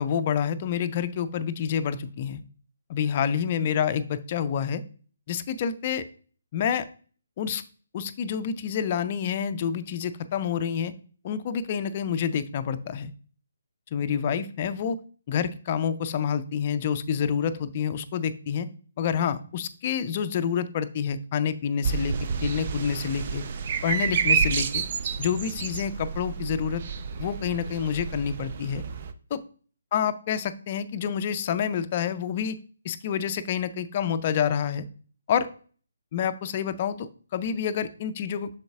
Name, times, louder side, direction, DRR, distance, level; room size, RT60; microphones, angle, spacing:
voice 1, 0.0-2.4 2.9-4.8 5.3-6.0 6.5-6.8 7.4-7.6 7.9-10.9 11.2-13.1 13.9-15.0 15.3-18.7 19.0-22.2 22.4-23.4 23.8-24.8 25.2-26.8 27.2-28.8 29.3-29.4 29.9-32.6 32.8-34.9 35.3-35.5 36.1-38.5, left 8 dB, 30° left, 11 dB, 0.5 m, -28 dB
sound 1, 21.8-29.1, right 6 dB, 40° right, 0.5 m, -29 dB
7.7 x 6.5 x 2.4 m, 0.41 s
figure-of-eight pair, 140°, 0 cm